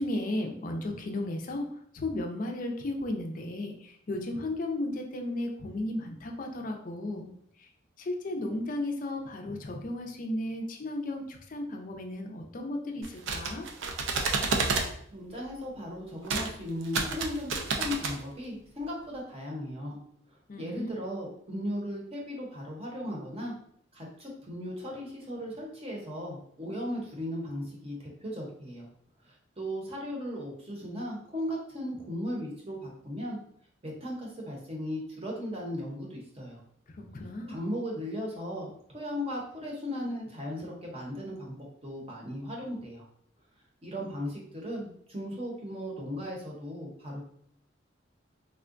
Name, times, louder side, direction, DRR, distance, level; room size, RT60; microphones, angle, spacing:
voice 1, 0.0-1.7 1.9-7.3 8.0-13.7 20.5-20.9 37.0-37.6, left 1 dB, 45° left, 3 dB, 0.4 m, -34 dB
sound 1, 13.0-14.9 16.2-16.5 16.8-18.2, right 4 dB, 85° right, 0.4 m, -30 dB
voice 2, 15.1-20.0 20.6-23.5 23.9-28.9 29.6-33.4 33.8-36.6 37.5-43.0 43.8-47.2, equal, 30° right, -2 dB, 0.7 m, -37 dB
3.5 x 2.2 x 2.4 m, 0.65 s
head